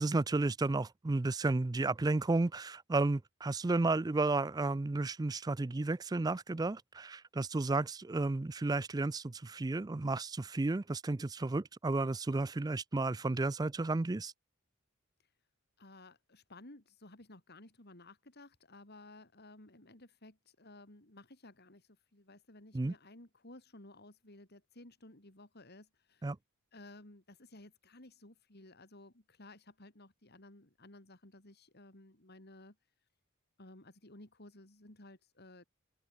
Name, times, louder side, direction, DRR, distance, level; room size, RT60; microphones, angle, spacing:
voice 1, 0.0-14.3 22.7-22.9 26.2-26.4, right 2 dB, 20° right, 0.4 m, -32 dB
voice 2, 15.8-26.3 26.7-32.8 33.6-35.6, left 2 dB, 50° left, 3.7 m, -56 dB
open air
head